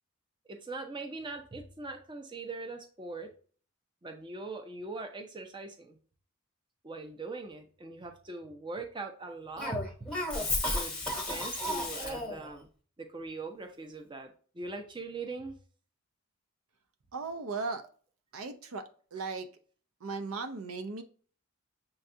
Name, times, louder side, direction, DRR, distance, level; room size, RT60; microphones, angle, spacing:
voice 1, 0.5-3.3 4.0-6.0 6.8-9.8 10.7-11.0 11.3-12.7 13.0-14.3 14.5-15.6, right 3 dB, 20° right, 4 dB, 0.5 m, -41 dB
Cough, 9.6-12.5, left 1 dB, 5° left, 0.9 m, -33 dB
voice 2, 17.1-17.9 18.3-19.5 20.0-21.0, right 4 dB, 75° right, 8 dB, 0.5 m, -37 dB
6.6 x 2.3 x 2.6 m, 0.43 s
head